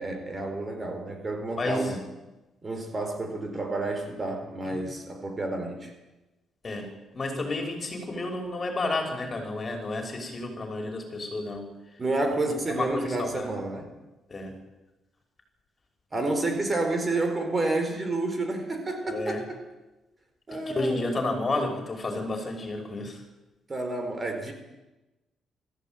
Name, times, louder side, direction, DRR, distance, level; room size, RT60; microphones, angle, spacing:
voice 1, 0.0-2.0 2.6-5.9 12.0-13.9 16.1-19.6 20.5-21.1 23.7-24.5, right 2 dB, 30° right, 5 dB, 4.3 m, -30 dB
voice 2, 1.6-1.9 4.7-4.8 6.6-11.7 12.5-13.5 14.3-14.5 19.0-19.4 20.7-23.2, left 2 dB, 35° left, 3 dB, 5.8 m, -31 dB
21.5 x 15.0 x 9.3 m, 1.0 s
cardioid pair, 90°, 0 cm